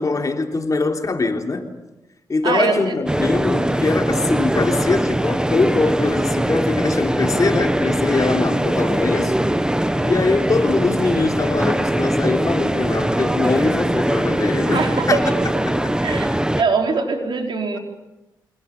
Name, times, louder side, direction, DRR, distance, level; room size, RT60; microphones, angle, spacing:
voice 1, 0.0-1.7 2.3-9.3 10.0-15.2 15.7-15.8, left 3 dB, 45° left, 3.5 m, -22 dB
voice 2, 2.4-2.9 14.7-15.1 16.0-17.8, right 4 dB, 75° right, 4.6 m, -22 dB
sound 1, 3.1-16.6, right 1 dB, 10° right, 1.3 m, -21 dB
28.0 x 26.5 x 7.3 m
cardioid pair, 85°, 8 cm